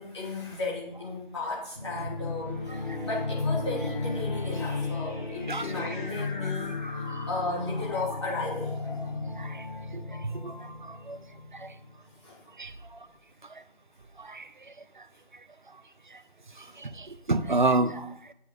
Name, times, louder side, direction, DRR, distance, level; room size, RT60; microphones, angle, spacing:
voice 1, 0.0-9.2 12.2-12.5 16.5-16.8, left 3 dB, 30° left, -6 dB, 3.0 m, -35 dB
sound 1, 1.7-12.0, left 3 dB, 50° left, 3.6 m, -34 dB
voice 2, 10.9-11.2 11.6-11.7 12.6-12.7 14.2-14.4 16.8-18.1, right 2 dB, 55° right, 12 dB, 0.7 m, -28 dB
8.4 x 4.6 x 7.4 m, 0.74 s
figure-of-eight pair, 160°, 30 cm